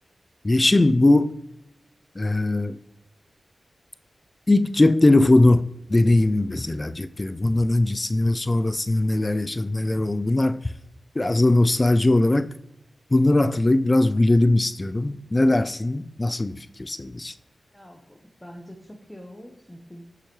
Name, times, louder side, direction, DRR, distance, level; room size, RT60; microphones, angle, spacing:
voice 1, 0.4-1.3 2.2-2.8 4.5-10.7 11.2-12.5 13.1-17.3, left 2 dB, 30° left, 0.4 m, -20 dB
voice 2, 17.7-20.0, equal, 15° left, 1.1 m, -44 dB
6.5 x 5.7 x 3.2 m
cardioid pair, 45°, 0 cm